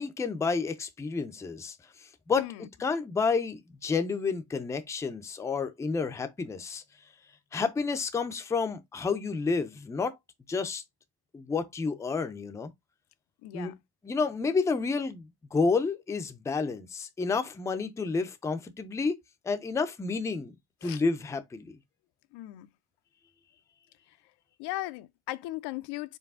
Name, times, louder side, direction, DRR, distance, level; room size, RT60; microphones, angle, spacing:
voice 1, 0.0-2.4 2.8-6.8 7.5-10.2 10.5-10.8 11.3-12.7 13.5-13.7 14.0-15.2 15.5-19.2 19.4-20.5 20.8-21.8, left 4 dB, 10° left, 0.4 m, -30 dB
voice 2, 2.4-2.7 13.4-13.7 20.8-21.0 22.3-22.7 24.1-24.2 24.6-26.2, left 17 dB, 90° left, 0.6 m, -37 dB
4.7 x 3.1 x 3.5 m
cardioid pair, 160°, 38 cm